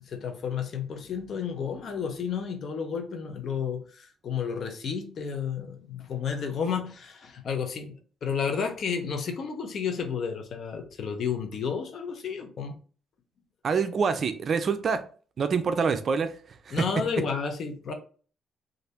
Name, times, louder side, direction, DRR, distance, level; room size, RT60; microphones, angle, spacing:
voice 1, 0.1-12.8 16.7-17.9, left 6 dB, 60° left, 0.7 m, -32 dB
voice 2, 13.6-15.0 15.4-16.8, right 5 dB, 50° right, 0.4 m, -26 dB
3.2 x 2.5 x 2.8 m
cardioid pair, 90°, 0 cm